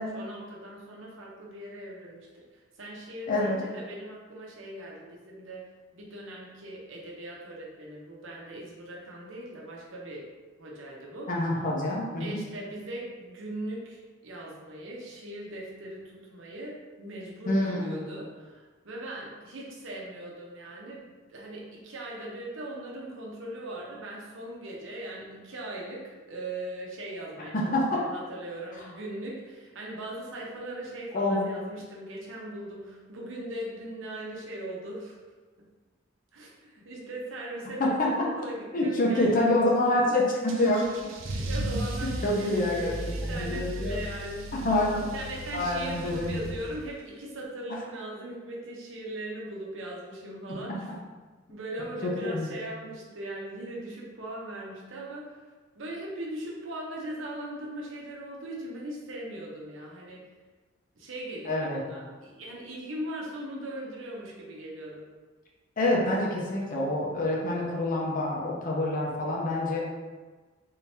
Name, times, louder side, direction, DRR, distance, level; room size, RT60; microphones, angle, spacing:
voice 1, 0.0-10.3 10.6-11.5 12.2-35.2 35.6-35.7 36.3-38.1 38.4-39.6 40.1-40.2 41.3-44.5 45.1-50.9 51.5-55.4 55.7-60.3 61.0-65.1, right 1 dB, 70° right, -3 dB, 0.9 m, -39 dB
voice 2, 3.3-3.6 11.3-12.4 17.5-18.0 27.5-28.0 31.1-31.4 37.8-38.1 38.7-40.2 40.6-40.9 42.0-42.9 43.3-44.0 44.5-45.1 45.5-46.4 50.5-50.6 52.0-52.5 61.4-61.8 65.8-69.8, left 1 dB, 45° left, -3 dB, 0.8 m, -26 dB
Car / Engine starting / Accelerating revving vroom, 40.5-47.0, right 1 dB, 90° right, 0.5 m, -36 dB
3.8 x 3.4 x 2.8 m, 1.3 s
head